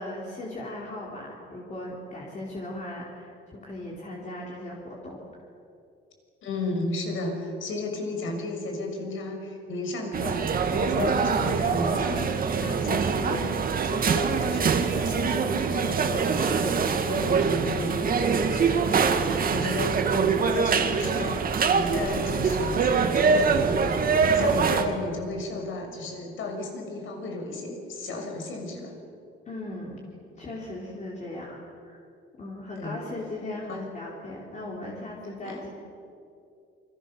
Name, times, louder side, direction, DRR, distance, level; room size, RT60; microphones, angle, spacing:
voice 1, 0.0-5.2 29.5-30.0 30.4-31.6 31.8-32.0 32.4-35.7, left 1 dB, 35° left, -3 dB, 4.1 m, -37 dB
voice 2, 6.4-13.6 13.8-16.8 17.0-28.9 32.8-33.0 33.7-33.8 35.4-35.6, left 2 dB, 70° left, 2 dB, 6.3 m, -33 dB
sound 1, 10.1-24.8, right 5 dB, 45° right, 2.1 m, -24 dB
28.5 x 25.5 x 7.0 m, 2.5 s
cardioid pair, 150°, 21 cm